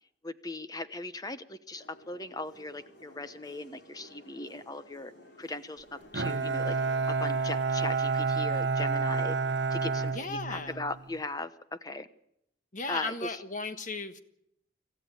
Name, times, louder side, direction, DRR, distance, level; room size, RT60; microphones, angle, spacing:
voice 1, 0.2-5.1 5.4-6.8 7.1-9.4 9.7-12.1 12.9-13.4, left 2 dB, 20° left, 12 dB, 0.9 m, -38 dB
sound 1, 1.7-7.4, equal, 60° left, 3.5 m, -54 dB
Bowed string instrument, 6.1-11.0, right 4 dB, 60° right, 1.0 m, -29 dB
voice 2, 10.1-10.8 12.7-14.2, left 3 dB, 40° left, 10 dB, 1.4 m, -36 dB
26.0 x 14.5 x 9.1 m, 0.79 s
head